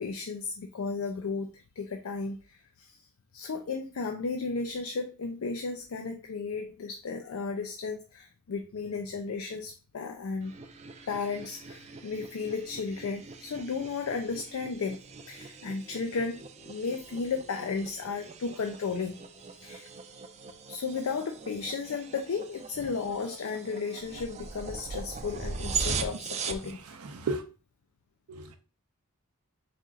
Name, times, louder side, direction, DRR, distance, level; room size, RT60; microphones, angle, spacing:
voice 1, 0.0-3.0 3.3-10.5 11.1-15.0 15.3-19.2 19.5-19.9 20.7-26.9, left 4 dB, 65° left, 0.4 m, -34 dB
sound 1, 10.4-26.7, right 5 dB, 30° right, 0.4 m, -40 dB
voice 2, 27.0-27.4 28.3-28.5, right 3 dB, 80° right, 0.6 m, -33 dB
4.2 x 2.4 x 3.7 m
head